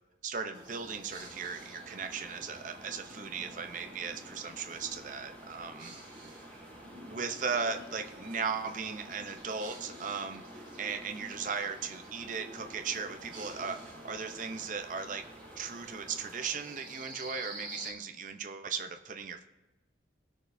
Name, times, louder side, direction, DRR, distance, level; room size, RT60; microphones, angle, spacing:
voice 1, 0.2-5.9 7.0-13.8 14.0-15.2 15.6-19.4, right 5 dB, 45° right, 6 dB, 0.6 m, -37 dB
sound 1, 0.5-17.9, right 1 dB, 25° right, 1.8 m, -49 dB
Mechanical fan, 1.2-16.5, equal, 10° left, 0.9 m, -54 dB
18.0 x 6.3 x 2.6 m, 1.1 s
head